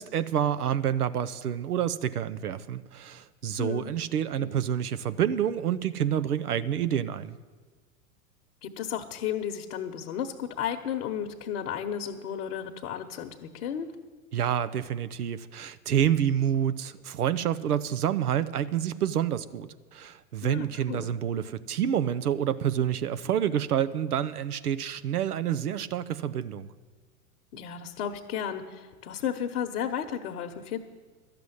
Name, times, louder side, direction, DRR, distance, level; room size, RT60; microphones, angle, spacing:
voice 1, 0.0-7.4 14.3-26.7, right 9 dB, 85° right, 14 dB, 0.8 m, -28 dB
voice 2, 3.6-3.9 4.4-4.6 8.6-13.9 20.4-21.1 27.5-30.8, left 9 dB, 60° left, 4 dB, 1.1 m, -33 dB
12.0 x 6.9 x 9.6 m, 1.4 s
hypercardioid pair, 100°, 44 cm